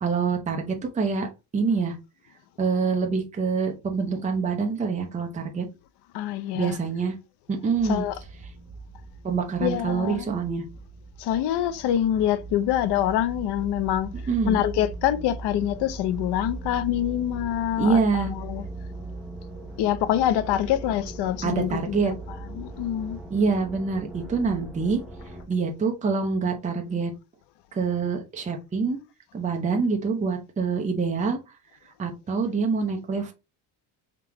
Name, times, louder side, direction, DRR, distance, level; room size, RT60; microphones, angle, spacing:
voice 1, 0.0-1.3 1.5-2.0 2.6-5.7 6.5-7.1 7.5-8.0 9.2-10.7 14.3-14.6 17.8-18.3 21.4-22.1 23.3-25.0 25.5-27.1 27.7-29.0 29.3-31.4 32.0-33.3, right 5 dB, 15° right, 0.7 m, -25 dB
voice 2, 6.1-6.8 7.8-8.2 9.6-10.3 11.2-14.1 14.4-18.6 19.8-22.1 22.5-23.2, left 11 dB, 70° left, 0.7 m, -25 dB
sound 1, 7.7-25.4, right 2 dB, ahead, 1.1 m, -39 dB
3.7 x 2.9 x 4.7 m
cardioid pair, 160°, 42 cm